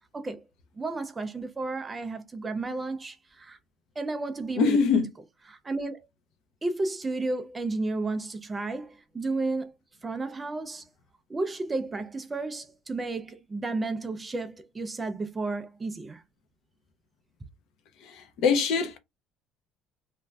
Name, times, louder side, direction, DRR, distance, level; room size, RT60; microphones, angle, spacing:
voice 1, 0.8-3.6 4.0-4.8 5.5-6.1 6.6-9.7 10.0-10.8 11.3-16.2, right 3 dB, 15° right, 0.3 m, -32 dB
voice 2, 4.6-5.1 18.2-19.0, left 5 dB, 55° left, 0.6 m, -23 dB
2.5 x 2.2 x 3.2 m
cardioid pair, 165°, 0 cm